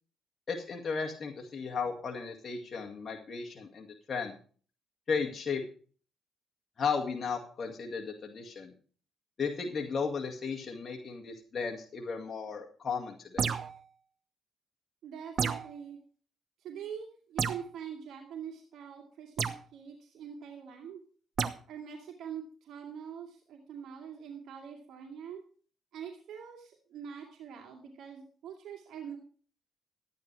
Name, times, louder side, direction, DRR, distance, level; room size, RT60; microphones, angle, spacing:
voice 1, 0.5-4.3 5.1-5.6 6.8-8.7 9.4-13.5, left 5 dB, 40° left, 1 dB, 2.1 m, -35 dB
sound 1, 13.4-13.8 15.4-15.7 17.4-17.7 19.4-19.6 21.4-21.6, right 6 dB, 50° right, 1.0 m, -31 dB
voice 2, 15.0-16.0 16.6-21.0 21.7-25.4 25.9-29.2, right 8 dB, 75° right, 2 dB, 2.2 m, -44 dB
13.0 x 9.7 x 4.7 m, 0.43 s
cardioid pair, 90°, 0 cm